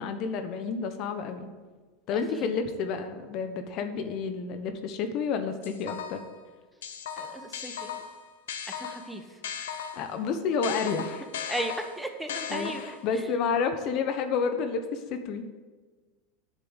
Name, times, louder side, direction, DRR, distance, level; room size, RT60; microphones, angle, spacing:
voice 1, 0.0-1.5 2.1-6.2 9.9-11.2 12.5-15.5, left 5 dB, 50° left, 8 dB, 1.1 m, -30 dB
voice 2, 2.1-2.5 7.2-8.0 8.7-9.2 11.5-13.3, right 1 dB, 5° right, 5 dB, 1.1 m, -36 dB
sound 1, 5.6-6.3 6.8-10.2 10.6-13.1, left 8 dB, 85° left, 1.0 m, -37 dB
8.4 x 6.9 x 8.1 m, 1.3 s
supercardioid pair, 110°, 0 cm